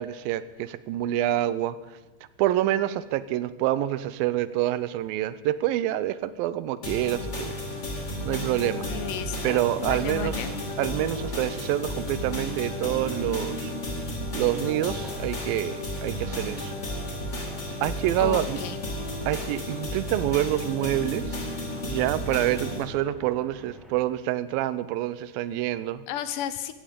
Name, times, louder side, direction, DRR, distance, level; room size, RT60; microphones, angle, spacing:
voice 1, 0.0-1.8 2.4-7.6 8.2-8.9 9.4-10.4 10.8-13.7 14.3-16.7 17.8-18.6 19.3-21.4 21.8-26.0, right 13 dB, 85° right, 16 dB, 2.4 m, -27 dB
sound 1, 6.8-22.8, equal, 25° left, 2.0 m, -33 dB
sound 2, 7.1-24.0, equal, ahead, 0.7 m, -50 dB
voice 2, 8.9-10.5 18.2-18.8 26.1-26.7, left 11 dB, 80° left, 13 dB, 2.0 m, -33 dB
16.0 x 14.5 x 5.2 m, 1.1 s
omnidirectional pair, 4.1 m